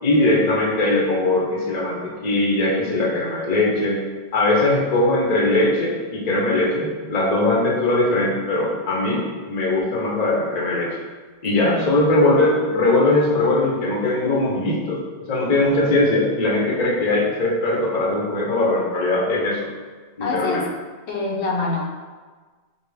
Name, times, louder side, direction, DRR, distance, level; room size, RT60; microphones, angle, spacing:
voice 1, 0.0-4.0 4.3-11.0 11.4-15.0 15.3-19.7 20.2-20.6, left 2 dB, 45° left, -3 dB, 0.8 m, -20 dB
voice 2, 11.6-11.9 20.2-20.7 21.1-21.8, left 3 dB, 85° left, -2 dB, 1.0 m, -25 dB
4.5 x 2.8 x 3.4 m, 1.4 s
omnidirectional pair, 1.1 m